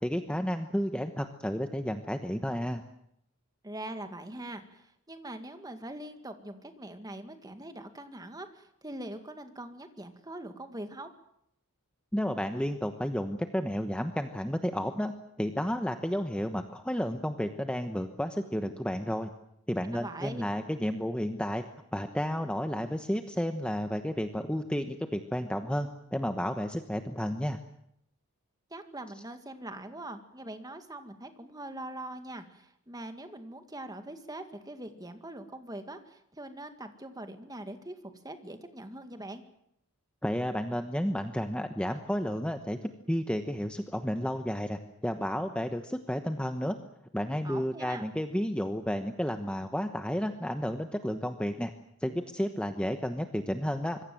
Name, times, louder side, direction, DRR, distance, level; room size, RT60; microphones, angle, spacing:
voice 1, 0.0-2.8 12.1-15.1 15.4-19.3 19.7-21.6 21.9-27.6 40.2-46.8 47.1-51.7 52.0-54.0, equal, 5° left, 7 dB, 1.1 m, -32 dB
voice 2, 3.6-11.1 19.9-20.5 28.7-39.4 47.4-48.1, right 1 dB, 15° right, 8 dB, 2.0 m, -42 dB
25.5 x 22.5 x 7.8 m, 0.75 s
head